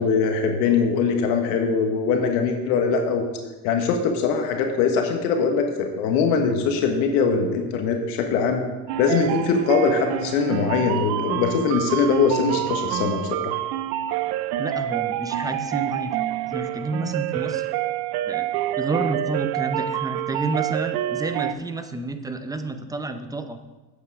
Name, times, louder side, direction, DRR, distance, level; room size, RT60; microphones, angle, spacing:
voice 1, 0.0-3.2 3.6-8.6 9.0-13.5, left 5 dB, 75° left, 4 dB, 1.4 m, -22 dB
sound 1, 8.9-21.5, right 12 dB, 55° right, 0.6 m, -27 dB
voice 2, 14.6-16.2 16.5-17.7 18.3-18.5 18.8-23.6, right 3 dB, 10° right, 8 dB, 0.7 m, -30 dB
8.4 x 8.2 x 4.7 m, 1.2 s
supercardioid pair, 110°, 46 cm